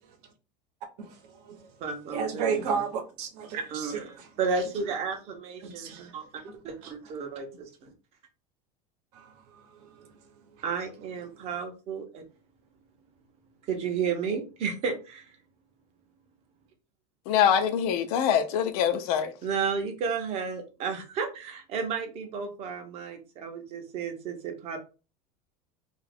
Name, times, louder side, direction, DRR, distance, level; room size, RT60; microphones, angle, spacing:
voice 1, 1.0-1.7 2.1-4.3 5.6-6.1 6.8-6.9 9.1-10.1, right 6 dB, 75° right, 0.8 m, -33 dB
voice 2, 1.8-2.8 3.7-4.0 4.4-7.9 10.6-12.2 13.7-15.2 19.4-24.8, right 5 dB, 30° right, 0.6 m, -32 dB
voice 3, 17.3-19.3, left 8 dB, 75° left, 0.5 m, -24 dB
2.7 x 2.4 x 3.4 m
cardioid pair, 175°, 20 cm